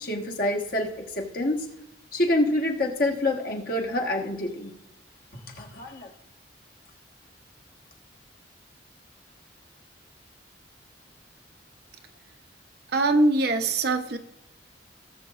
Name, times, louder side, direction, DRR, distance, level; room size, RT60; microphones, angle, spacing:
voice 1, 0.0-1.7 2.1-4.7 5.3-6.1, left 1 dB, 50° left, 0 dB, 1.4 m, -27 dB
voice 2, 12.9-14.2, right 2 dB, 60° right, 7 dB, 0.8 m, -22 dB
18.0 x 7.0 x 2.5 m, 0.79 s
head